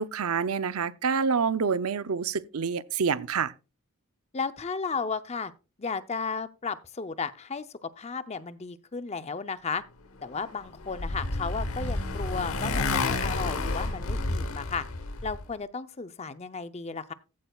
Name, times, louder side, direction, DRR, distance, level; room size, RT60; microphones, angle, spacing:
voice 1, 0.0-3.5, right 5 dB, 85° right, 0.6 m, -27 dB
voice 2, 4.3-5.5 5.8-9.8 10.2-14.9 15.2-17.1, left 5 dB, 30° left, 0.6 m, -34 dB
Motorcycle, 10.4-15.4, left 3 dB, 75° left, 1.0 m, -30 dB
15.0 x 8.8 x 2.3 m
head